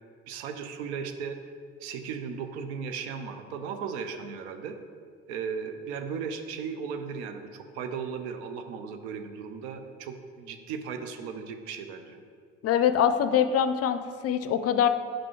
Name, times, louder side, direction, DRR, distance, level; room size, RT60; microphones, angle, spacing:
voice 1, 0.3-1.4 1.8-4.7 5.3-12.2, right 6 dB, 75° right, 8 dB, 0.7 m, -36 dB
voice 2, 12.6-14.9, left 8 dB, 45° left, 11 dB, 0.5 m, -24 dB
6.0 x 4.8 x 4.5 m, 2.1 s
hypercardioid pair, 60°, 34 cm